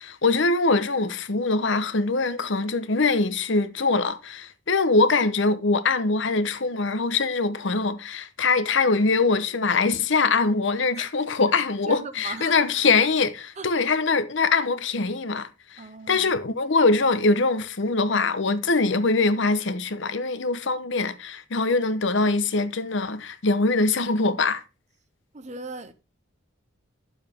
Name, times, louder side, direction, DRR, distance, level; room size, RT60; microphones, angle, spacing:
voice 1, 0.0-24.6, left 3 dB, 60° left, 0.8 m, -23 dB
voice 2, 11.9-12.6 13.6-13.7 15.8-16.3 25.3-25.9, right 3 dB, 35° right, 0.8 m, -38 dB
10.5 x 7.1 x 3.5 m
head